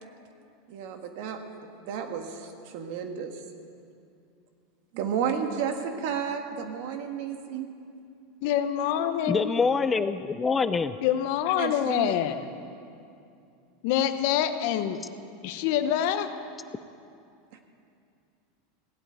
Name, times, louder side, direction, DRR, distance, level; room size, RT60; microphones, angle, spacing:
voice 1, 0.7-3.4 4.9-7.7 11.6-12.1 17.5-17.6, right 7 dB, 65° right, 1.6 m, -32 dB
voice 2, 8.4-9.5 11.0-12.5 13.8-15.0 15.4-16.3, left 10 dB, 65° left, 0.9 m, -26 dB
voice 3, 9.3-11.0, left 5 dB, 20° left, 0.4 m, -25 dB
16.5 x 8.3 x 9.2 m
supercardioid pair, 125°, 0 cm